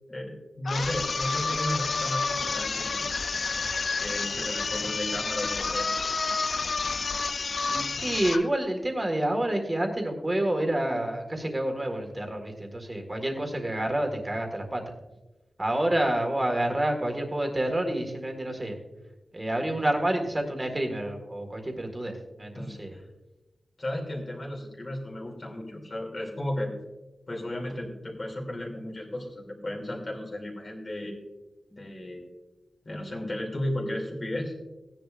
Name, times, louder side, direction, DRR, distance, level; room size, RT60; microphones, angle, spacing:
voice 1, 0.1-3.1 4.0-5.9 22.5-23.0 23.8-26.7 27.3-31.2 31.7-32.3 32.8-34.5, left 1 dB, 35° left, 0 dB, 2.8 m, -34 dB
sound 1, 0.6-8.5, left 4 dB, 55° left, 0.4 m, -29 dB
voice 2, 7.7-14.8 15.6-18.8 19.3-23.0, right 1 dB, 20° right, 3 dB, 1.8 m, -28 dB
16.5 x 10.5 x 2.5 m, 1.1 s
wide cardioid pair, 135°, 0 cm